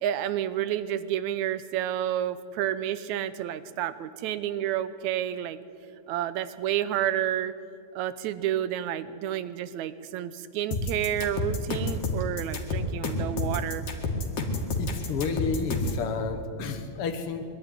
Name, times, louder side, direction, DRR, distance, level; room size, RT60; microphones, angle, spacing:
voice 1, 0.0-5.6 6.1-7.5 8.0-13.9, right 11 dB, 80° right, 14 dB, 2.1 m, -30 dB
sound 1, 10.7-16.0, left 2 dB, 80° left, 3.4 m, -29 dB
voice 2, 14.8-17.5, left 5 dB, 55° left, 7 dB, 2.0 m, -31 dB
22.0 x 12.5 x 9.7 m, 2.3 s
omnidirectional pair, 3.4 m